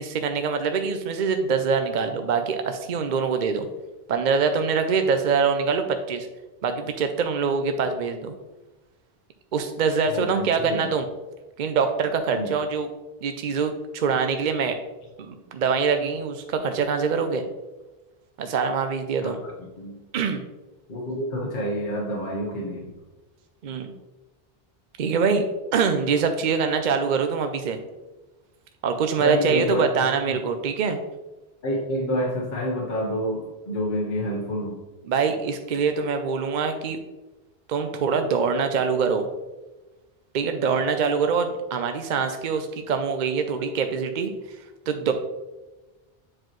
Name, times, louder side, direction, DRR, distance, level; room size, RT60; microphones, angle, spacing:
voice 1, 0.0-3.7 4.1-6.3 6.6-8.3 9.5-11.1 11.6-12.9 13.2-14.8 15.2-17.4 18.4-19.4 20.1-20.4 23.6-23.9 25.0-25.4 25.7-27.8 28.8-31.0 35.1-37.0 37.7-39.3 40.3-44.6 44.9-45.1, right 5 dB, 55° right, 7 dB, 0.6 m, -24 dB
voice 2, 10.1-10.9 12.3-12.5 19.2-20.0 20.9-22.9 29.2-30.4 31.6-34.8, equal, 55° left, -2 dB, 1.0 m, -29 dB
7.7 x 4.5 x 3.0 m, 1.1 s
omnidirectional pair, 1.0 m